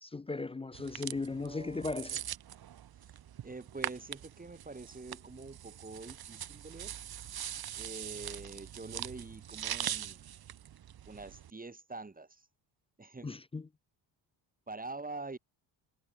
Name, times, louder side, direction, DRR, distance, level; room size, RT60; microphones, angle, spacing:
voice 1, 0.0-2.2 13.2-13.7, left 3 dB, 15° left, 0.4 m, -37 dB
sound 1, 0.7-11.5, right 10 dB, 50° right, 1.8 m, -42 dB
voice 2, 1.2-2.0 3.4-6.9 7.7-10.3 11.1-12.5 13.0-13.3 14.7-15.4, right 3 dB, 20° right, 4.4 m, -45 dB
cardioid pair, 110°, 48 cm